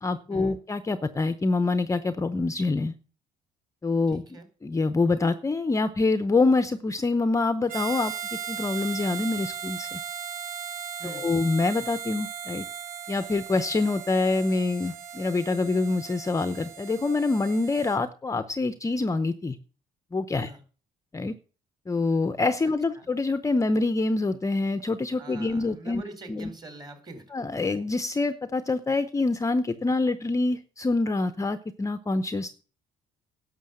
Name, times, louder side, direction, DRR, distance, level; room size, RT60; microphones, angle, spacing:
voice 1, 0.0-2.9 3.8-4.2 4.6-10.0 11.0-12.7 13.1-19.6 20.1-20.5 21.1-21.4 21.9-26.0 26.3-26.5 27.3-32.6, left 3 dB, 20° left, 11 dB, 0.7 m, -26 dB
voice 2, 4.1-4.5 11.0-11.3 20.4-20.6 22.9-23.1 25.2-27.3, right 2 dB, 25° right, 7 dB, 3.8 m, -43 dB
Harmonica, 7.7-18.0, right 8 dB, 55° right, 1.5 m, -37 dB
11.0 x 6.9 x 7.7 m, 0.37 s
cardioid pair, 110°, 17 cm